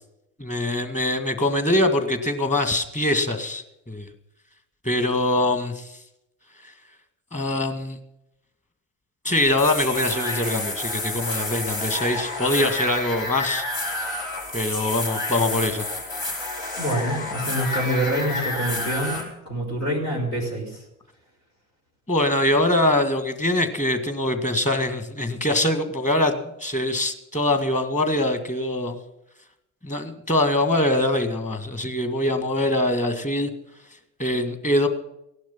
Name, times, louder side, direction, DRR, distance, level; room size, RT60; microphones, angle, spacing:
voice 1, 0.4-4.1 4.8-6.0 7.3-8.0 9.2-13.7 14.5-15.9 22.1-29.0 29.8-33.5 34.2-34.9, left 1 dB, 15° left, 8 dB, 2.0 m, -23 dB
sound 1, 9.3-19.2, left 2 dB, 60° left, 4.9 m, -29 dB
voice 2, 16.8-20.8, right 1 dB, 80° left, -3 dB, 4.3 m, -26 dB
17.0 x 11.5 x 5.9 m, 0.85 s
figure-of-eight pair, 65°, 44 cm